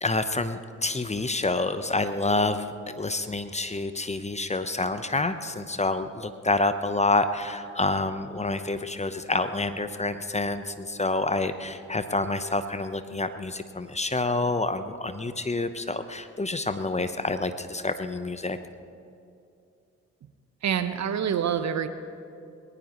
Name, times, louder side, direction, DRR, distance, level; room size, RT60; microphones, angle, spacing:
voice 1, 0.0-18.6, left 2 dB, 20° left, 10 dB, 1.0 m, -28 dB
voice 2, 20.6-21.9, right 8 dB, 50° right, 11 dB, 1.0 m, -26 dB
21.0 x 18.5 x 3.2 m, 2.7 s
hypercardioid pair, 40°, 36 cm